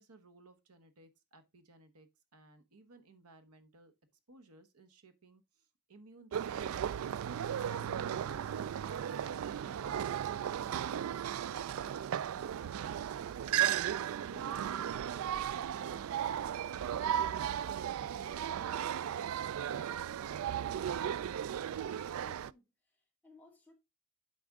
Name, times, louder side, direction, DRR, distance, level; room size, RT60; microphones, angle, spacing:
voice 1, 0.0-3.9 4.3-20.6, right 2 dB, 90° right, 1.2 m, -58 dB
sound 1, 6.3-22.5, right 9 dB, 70° right, 0.3 m, -35 dB
voice 2, 22.2-23.7, left 4 dB, 5° left, 1.9 m, -61 dB
8.6 x 5.0 x 3.6 m
head